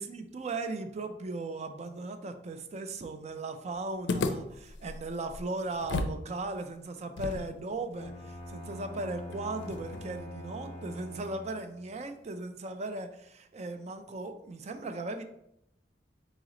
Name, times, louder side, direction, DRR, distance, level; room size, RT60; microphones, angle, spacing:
voice 1, 0.0-15.2, right 2 dB, 40° right, 8 dB, 0.4 m, -37 dB
sound 1, 4.1-6.2 6.5-6.6 7.2-10.3, left 3 dB, 85° left, 0.4 m, -36 dB
Bowed string instrument, 7.9-11.9, left 1 dB, 35° left, 0.5 m, -44 dB
4.0 x 3.0 x 3.7 m, 0.78 s
head